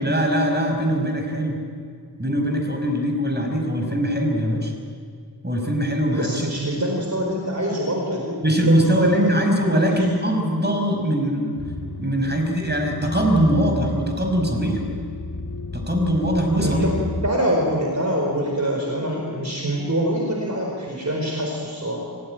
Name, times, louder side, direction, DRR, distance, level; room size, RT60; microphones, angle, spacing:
voice 1, 0.0-1.6 2.2-4.7 5.4-6.8 8.4-11.6 12.0-14.8 15.9-16.9, equal, 25° right, 2 dB, 6.0 m, -22 dB
voice 2, 6.1-9.2 9.7-10.1 16.6-22.1, equal, 45° right, -1 dB, 4.6 m, -25 dB
sound 1, 11.6-17.3, left 2 dB, 55° left, 1.8 m, -32 dB
27.0 x 16.5 x 9.1 m, 2.2 s
wide cardioid pair, 65°, 38 cm